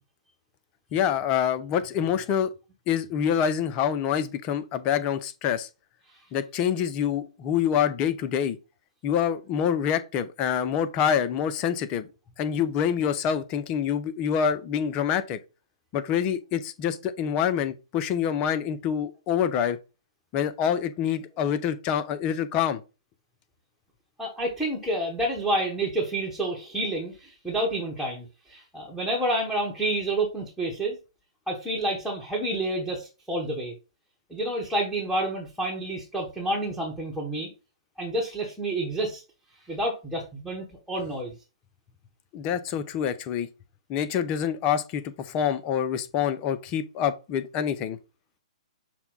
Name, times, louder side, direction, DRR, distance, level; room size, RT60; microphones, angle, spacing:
voice 1, 0.9-2.5 2.9-5.7 6.3-8.6 9.0-12.1 12.4-15.4 15.9-19.8 20.3-22.8 42.3-43.5 43.9-48.0, left 8 dB, 30° left, 0.5 m, -26 dB
voice 2, 24.2-31.0 31.5-33.7 34.3-37.5 38.0-39.2 39.7-41.3, right 1 dB, ahead, 1.2 m, -29 dB
5.8 x 2.2 x 3.9 m
hypercardioid pair, 125°, 4 cm